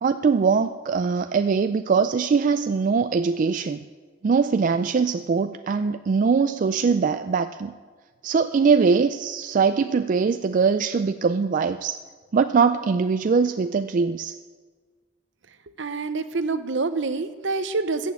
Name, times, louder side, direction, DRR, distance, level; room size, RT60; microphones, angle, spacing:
voice 1, 0.0-3.8 4.2-7.7 8.2-12.0 12.3-14.4, right 5 dB, 40° right, 9 dB, 0.3 m, -22 dB
voice 2, 15.8-18.1, right 3 dB, 65° right, 10 dB, 0.8 m, -26 dB
14.0 x 6.3 x 8.4 m, 1.5 s
head